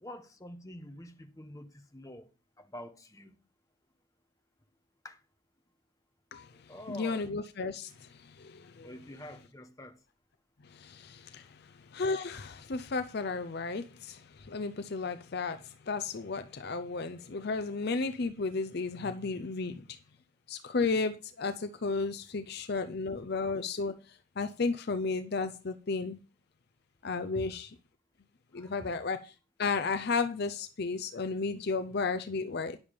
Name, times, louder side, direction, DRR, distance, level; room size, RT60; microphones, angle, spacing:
voice 1, 0.0-2.3 2.6-3.4 5.0-5.2 6.7-7.3 8.8-10.0 11.2-11.5 27.3-27.5 28.5-28.9, left 1 dB, 15° left, 1.1 m, -47 dB
voice 2, 6.9-8.9 10.6-20.0 20.5-26.2 27.0-27.7 28.5-29.3 29.6-32.8, left 4 dB, 50° left, 0.6 m, -33 dB
10.5 x 7.1 x 5.1 m
head